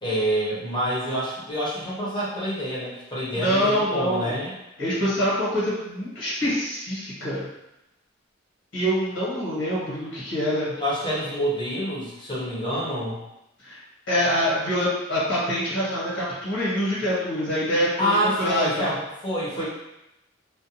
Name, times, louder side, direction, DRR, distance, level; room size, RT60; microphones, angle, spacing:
voice 1, 0.0-4.5 10.8-13.2 18.0-19.6, equal, 25° left, -7 dB, 0.8 m, -27 dB
voice 2, 3.4-4.3 4.8-7.5 8.7-10.7 13.6-13.8 14.1-18.1 18.4-18.9 19.6-19.7, equal, 80° left, -8 dB, 1.2 m, -25 dB
2.4 x 2.2 x 2.8 m, 0.90 s
head